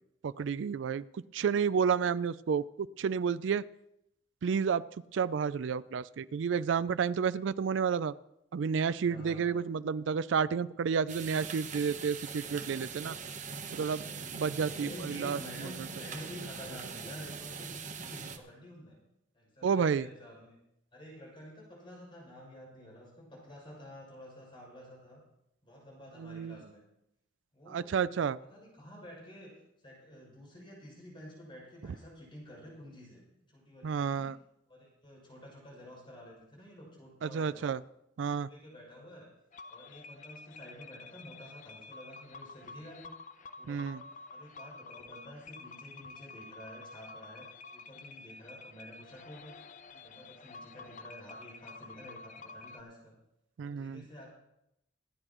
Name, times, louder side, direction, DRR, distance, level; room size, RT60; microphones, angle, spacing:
voice 1, 0.2-1.0 1.3-3.6 4.4-4.8 5.1-8.1 8.5-13.2 13.7-14.0 14.3-15.4 19.6-20.1 26.2-26.6 27.7-28.4 33.8-34.4 37.2-37.8 38.2-38.5 43.7-44.0 53.6-54.0, right 6 dB, 75° right, 17 dB, 0.4 m, -30 dB
voice 2, 9.0-9.6 13.7-19.0 19.3-20.6 20.9-25.2 25.6-26.8 27.5-28.1 28.4-29.5 29.8-33.2 33.5-34.3 34.7-37.7 38.4-39.3 39.7-43.1 43.6-49.6 49.9-53.1 53.6-54.3, equal, 25° left, -4 dB, 6.4 m, -50 dB
sound 1, 11.1-18.4, right 5 dB, 40° right, 1.0 m, -42 dB
sound 2, 39.5-52.8, left 3 dB, 40° left, 0.7 m, -50 dB
26.5 x 9.9 x 3.0 m, 0.82 s
head